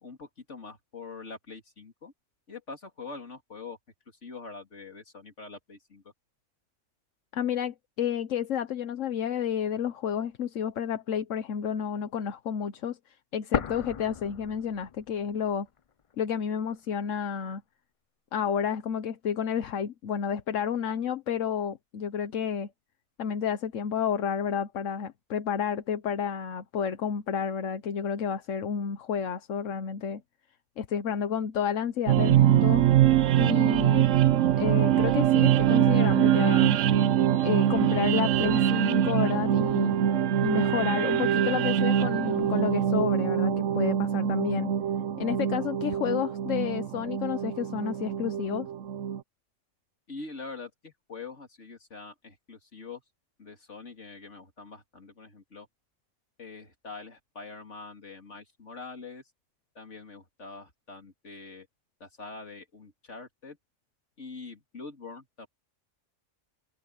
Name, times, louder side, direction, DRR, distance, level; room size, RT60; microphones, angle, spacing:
voice 1, 0.0-2.1 2.5-3.8 4.2-6.1 50.1-53.0 53.4-55.7 56.4-59.2 59.7-61.7 62.0-63.6 64.2-65.5, left 4 dB, 70° left, 3.4 m, -44 dB
voice 2, 7.3-15.7 16.2-17.6 18.3-22.7 23.2-30.2 30.8-32.8 33.4-34.1 34.6-36.8 37.4-39.9 40.4-44.7 45.2-48.7, left 8 dB, 85° left, 1.3 m, -30 dB
sound 1, 13.5-15.5 15.8-15.9 16.6-17.5, left 7 dB, 55° left, 0.3 m, -35 dB
sound 2, 32.1-49.2, right 10 dB, 80° right, 1.1 m, -24 dB
omnidirectional pair, 1.3 m